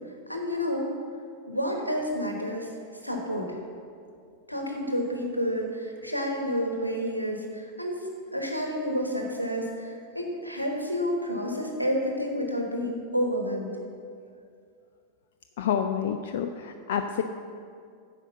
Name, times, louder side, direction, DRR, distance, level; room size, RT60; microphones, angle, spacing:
voice 1, 0.3-0.9 1.4-2.7 3.0-3.6 4.5-8.0 8.3-13.8, equal, 90° left, 2 dB, 1.1 m, -30 dB
voice 2, 15.6-17.2, left 8 dB, 55° left, 7 dB, 0.4 m, -28 dB
9.1 x 5.2 x 6.7 m, 2.3 s
figure-of-eight pair, 90°, 0 cm